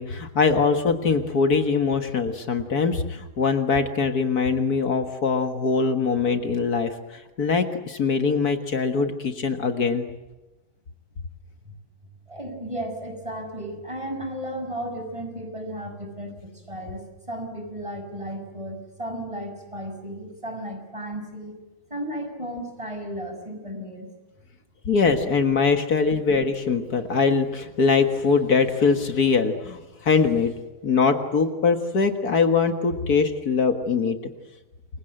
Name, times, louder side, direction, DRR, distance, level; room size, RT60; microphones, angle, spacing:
voice 1, 0.0-10.1 24.9-30.5 30.8-34.2, left 5 dB, 65° left, 7 dB, 2.1 m, -22 dB
voice 2, 12.3-21.5 21.9-24.1, right 1 dB, 20° right, 4 dB, 6.2 m, -34 dB
29.0 x 23.5 x 7.8 m, 1.1 s
omnidirectional pair, 1.7 m